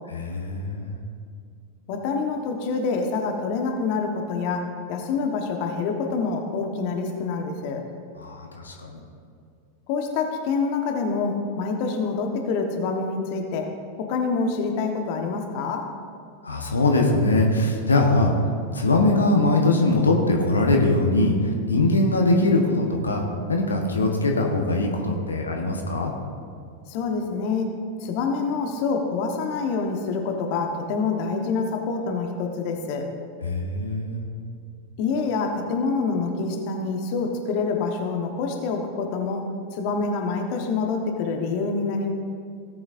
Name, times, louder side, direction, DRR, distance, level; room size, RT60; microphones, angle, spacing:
voice 1, 0.1-0.9 8.2-9.0 16.4-18.3 18.7-23.2 23.5-26.1 33.4-34.2, left 2 dB, 75° left, 1 dB, 1.2 m, -21 dB
voice 2, 1.9-7.8 9.9-15.9 26.9-27.7 28.0-33.1 35.0-42.1, left 4 dB, 45° left, 3 dB, 1.2 m, -26 dB
17.0 x 8.5 x 2.6 m, 2.3 s
figure-of-eight pair, 90°, 0 cm